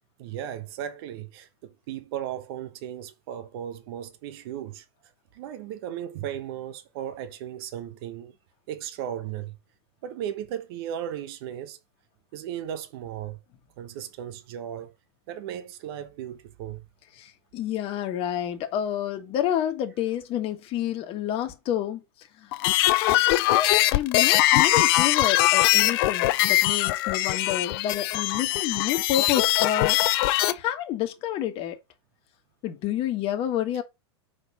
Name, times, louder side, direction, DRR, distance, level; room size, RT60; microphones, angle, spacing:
voice 1, 0.2-4.8 5.3-8.3 8.7-9.6 10.0-11.8 12.3-13.4 13.8-14.9 15.3-16.8, right 10 dB, 60° right, 1.1 m, -36 dB
voice 2, 17.2-22.0 22.4-22.5 23.0-30.0 30.5-31.8 32.6-33.8, left 11 dB, 40° left, 1.4 m, -29 dB
sound 1, 22.5-30.5, left 17 dB, 60° left, 0.6 m, -22 dB
5.2 x 4.2 x 5.7 m
hypercardioid pair, 120°, 14 cm